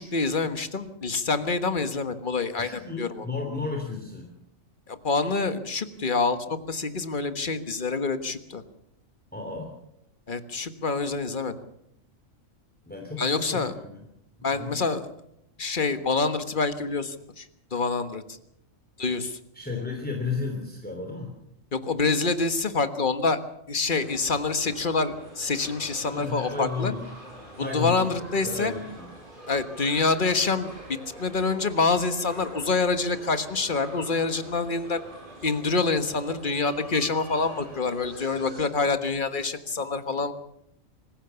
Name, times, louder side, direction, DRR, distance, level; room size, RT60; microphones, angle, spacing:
voice 1, 0.0-3.3 4.9-8.6 10.3-11.6 13.2-13.7 14.4-15.1 15.6-17.5 17.7-18.4 19.0-19.4 21.7-23.4 23.7-26.9 27.6-28.7 29.5-30.7 31.2-35.0 35.4-40.3, left 4 dB, 40° left, 10 dB, 1.5 m, -26 dB
voice 2, 2.6-4.3 9.3-9.7 12.9-14.0 14.5-14.8 19.5-21.3 26.1-27.1 27.6-29.1, left 4 dB, 5° left, 2 dB, 3.2 m, -33 dB
sound 1, 24.0-38.7, right 1 dB, 40° right, 5.3 m, -45 dB
25.5 x 15.5 x 7.0 m, 0.77 s
omnidirectional pair, 1.4 m